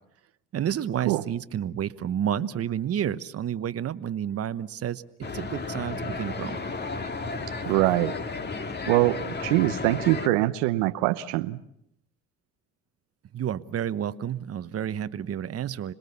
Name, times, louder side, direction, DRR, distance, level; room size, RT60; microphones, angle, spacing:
voice 1, 0.5-6.6 13.3-15.9, right 9 dB, 45° right, 13 dB, 1.1 m, -30 dB
sound 1, 5.2-10.3, left 3 dB, 30° left, 2.0 m, -33 dB
voice 2, 7.7-8.1 8.9-11.6, right 17 dB, 85° right, 10 dB, 0.9 m, -23 dB
27.0 x 20.5 x 7.1 m, 0.76 s
supercardioid pair, 70°, 33 cm